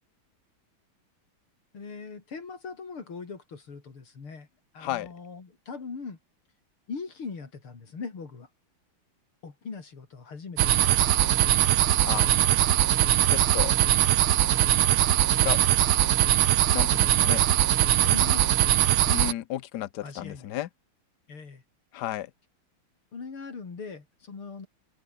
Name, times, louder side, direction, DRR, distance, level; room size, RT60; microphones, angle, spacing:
voice 1, 1.7-4.5 4.7-6.2 6.9-8.5 9.4-11.3 18.0-18.8 20.0-20.5 21.3-21.6 23.1-24.7, left 5 dB, 80° left, 4.5 m, -40 dB
sound 1, 10.6-19.3, right 12 dB, 80° right, 1.9 m, -21 dB
voice 2, 13.3-13.7 15.3-15.6 16.7-17.4 19.1-20.7 21.9-22.3, left 13 dB, 60° left, 1.2 m, -33 dB
open air
omnidirectional pair, 2.3 m